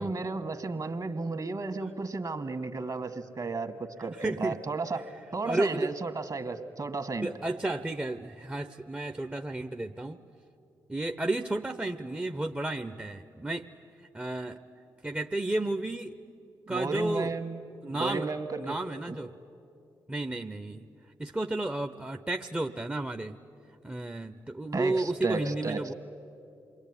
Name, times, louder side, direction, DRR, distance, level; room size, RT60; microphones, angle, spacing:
voice 1, 0.0-7.3 16.7-17.6 17.9-18.8 19.1-19.2 24.7-25.9, right 3 dB, 40° right, 8 dB, 2.0 m, -33 dB
voice 2, 4.0-4.6 5.4-5.9 7.2-10.2 10.9-13.7 14.1-14.6 15.0-16.1 16.7-17.3 17.8-18.3 18.6-19.3 20.1-20.9 21.2-23.4 23.8-25.9, right 2 dB, 15° right, 6 dB, 1.0 m, -32 dB
27.5 x 22.0 x 9.9 m, 2.7 s
hypercardioid pair, 40°, 9 cm